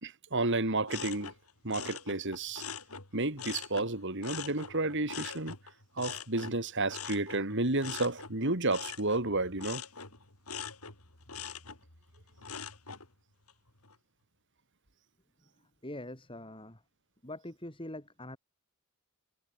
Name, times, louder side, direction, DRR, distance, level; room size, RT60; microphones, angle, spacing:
voice 1, 0.0-1.3 1.6-2.6 3.1-5.5 6.0-9.8, right 2 dB, 55° right, 3.9 m, -31 dB
sound 1, 0.9-3.9 4.2-13.1 13.5-13.9, left 7 dB, 85° left, 6.1 m, -43 dB
voice 2, 15.8-16.8 17.2-18.4, left 1 dB, 25° left, 5.1 m, -43 dB
head